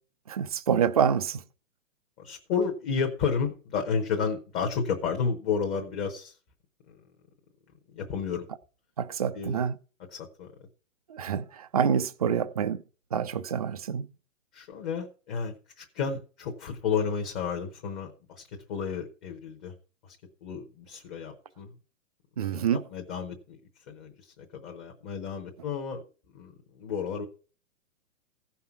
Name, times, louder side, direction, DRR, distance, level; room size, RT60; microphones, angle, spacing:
voice 1, 0.3-1.4 9.0-9.8 11.1-12.8 13.1-14.1 22.4-22.8, right 7 dB, 30° right, 0.4 m, -27 dB
voice 2, 2.2-6.4 7.9-8.4 9.3-9.6 10.1-10.5 14.5-18.4 18.7-19.7 20.0-20.2 20.4-21.7 22.4-23.6 23.9-26.0 26.3-26.5 26.8-27.3, left 6 dB, 15° left, 0.9 m, -32 dB
15.0 x 5.7 x 5.7 m
hypercardioid pair, 165°, 40 cm